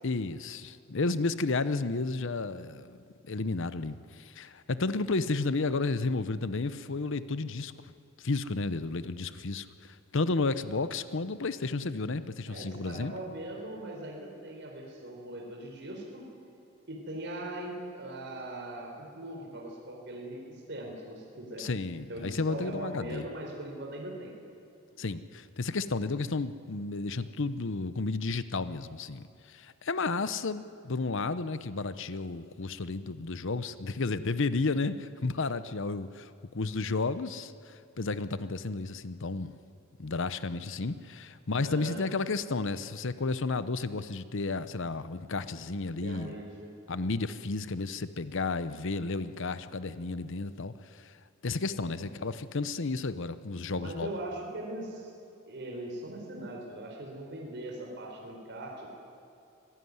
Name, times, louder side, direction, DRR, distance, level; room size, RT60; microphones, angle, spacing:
voice 1, 0.0-7.9 8.2-13.1 21.6-23.3 25.0-39.5 40.0-46.3 46.9-51.1 51.4-54.1, left 3 dB, 60° left, 13 dB, 0.8 m, -32 dB
voice 2, 12.5-16.2 16.9-21.7 22.1-24.4 41.6-42.0 46.0-46.7 53.7-55.1 55.5-58.9, right 1 dB, 55° right, -1 dB, 4.0 m, -40 dB
25.0 x 17.0 x 9.6 m, 2.6 s
head